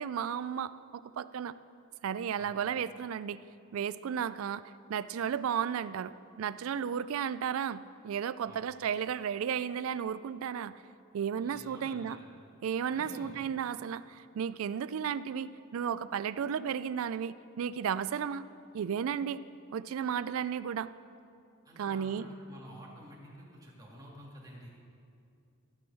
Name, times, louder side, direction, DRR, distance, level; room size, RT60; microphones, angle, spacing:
voice 1, 0.0-1.5 2.0-3.4 3.7-4.6 4.9-10.7 11.1-12.2 12.6-18.4 18.7-19.4 19.7-20.9 21.8-22.3, right 8 dB, 65° right, 16 dB, 0.3 m, -34 dB
voice 2, 11.4-12.2 12.9-13.3 21.7-24.7, equal, 15° right, -4 dB, 2.2 m, -50 dB
14.5 x 6.2 x 6.2 m, 2.5 s
head